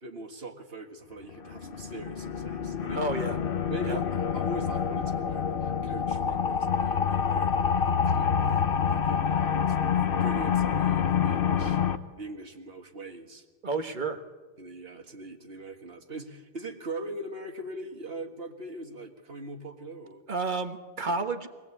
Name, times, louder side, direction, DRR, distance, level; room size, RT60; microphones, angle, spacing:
voice 1, 0.0-3.0 3.7-11.8 12.2-13.5 14.6-20.2, right 2 dB, 65° right, 4 dB, 2.1 m, -41 dB
sound 1, 1.3-12.0, left 7 dB, 60° left, 1.1 m, -27 dB
voice 2, 2.9-3.4 3.8-4.0 13.6-14.2 20.3-21.5, right 3 dB, 50° right, 7 dB, 1.5 m, -30 dB
24.0 x 18.5 x 8.5 m, 1.4 s
omnidirectional pair, 1.1 m